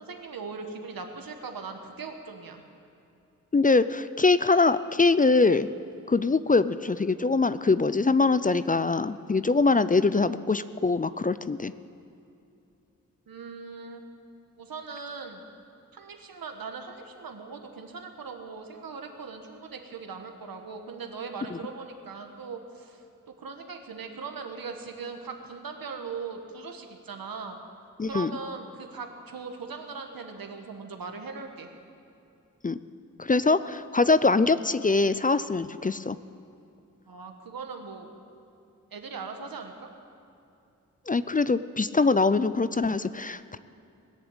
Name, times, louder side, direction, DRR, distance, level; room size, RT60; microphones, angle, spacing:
voice 1, 0.0-2.6 13.3-14.0 14.6-15.4 15.9-23.0 23.4-27.6 28.0-31.7 37.0-38.1 38.9-39.7, right 5 dB, 85° right, 4 dB, 1.5 m, -39 dB
voice 2, 3.5-5.7 6.1-11.7 28.0-28.3 32.6-32.8 33.2-36.2 41.1-43.6, left 3 dB, 25° left, 14 dB, 0.4 m, -23 dB
20.5 x 7.1 x 8.8 m, 2.6 s
cardioid pair, 50°, 34 cm